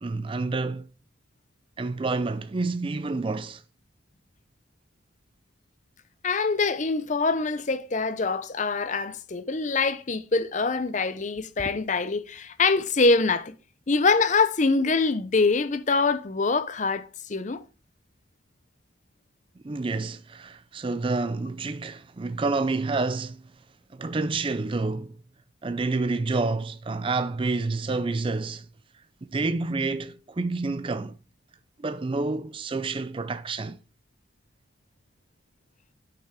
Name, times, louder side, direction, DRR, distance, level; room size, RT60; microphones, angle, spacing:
voice 1, 0.0-0.9 1.8-3.6 19.6-23.4 23.9-25.1 25.6-28.6 29.3-31.1 31.8-33.8, right 3 dB, 25° right, 0.4 m, -28 dB
voice 2, 6.2-13.5 13.9-17.6, left 4 dB, 40° left, 0.7 m, -24 dB
10.0 x 5.7 x 3.7 m
head